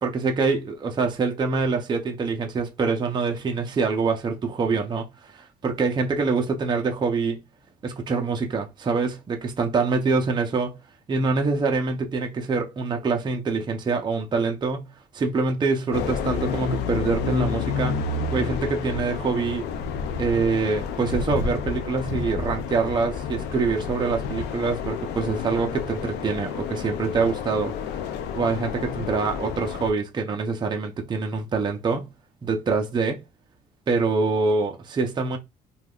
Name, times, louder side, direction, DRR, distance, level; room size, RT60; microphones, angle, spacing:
voice 1, 0.0-7.4 7.8-10.8 11.1-19.7 20.2-27.7 28.3-32.1 32.4-33.2 33.9-35.4, right 4 dB, 25° right, 0.5 m, -25 dB
sound 1, 15.9-29.9, left 6 dB, 80° left, 0.4 m, -30 dB
3.3 x 2.4 x 2.3 m
cardioid pair, 110°, 17 cm